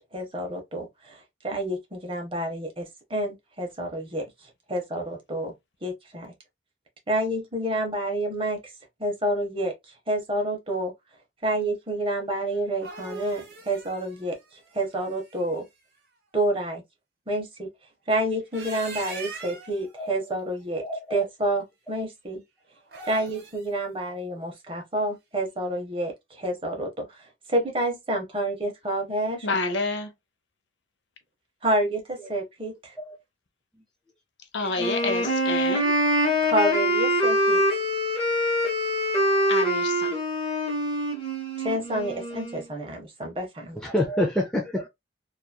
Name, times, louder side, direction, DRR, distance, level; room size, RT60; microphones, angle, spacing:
voice 1, 0.1-4.3 4.7-5.5 5.8-6.3 7.1-8.6 9.0-9.7 10.1-10.9 11.4-14.4 14.7-15.7 16.3-16.8 17.3-17.7 18.1-20.8 21.1-22.4 23.1-29.5 31.6-32.9 36.4-37.8 41.6-43.8, right 1 dB, 30° right, 0.7 m, -28 dB
sound 1, 12.5-15.6 18.3-19.8 22.8-23.7, right 4 dB, 55° right, 0.9 m, -41 dB
voice 2, 20.8-21.2 33.0-33.2 43.8-44.9, left 1 dB, 5° left, 0.3 m, -27 dB
voice 3, 29.4-30.1 34.5-35.9 39.5-40.1, left 3 dB, 70° left, 0.6 m, -28 dB
Wind instrument woodwind instrument, 34.7-42.6, equal, 30° left, 0.8 m, -24 dB
2.9 x 2.3 x 2.2 m
head